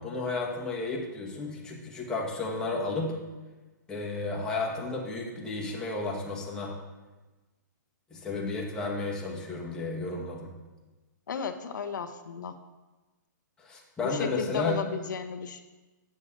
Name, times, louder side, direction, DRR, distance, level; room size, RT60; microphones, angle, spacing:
voice 1, 0.0-3.2 3.9-6.7 8.1-10.5 13.6-14.8, left 3 dB, 5° left, -3 dB, 1.2 m, -33 dB
voice 2, 11.3-12.6 14.0-15.6, left 6 dB, 70° left, 7 dB, 0.7 m, -34 dB
8.5 x 6.5 x 3.7 m, 1.2 s
hypercardioid pair, 155°, 10 cm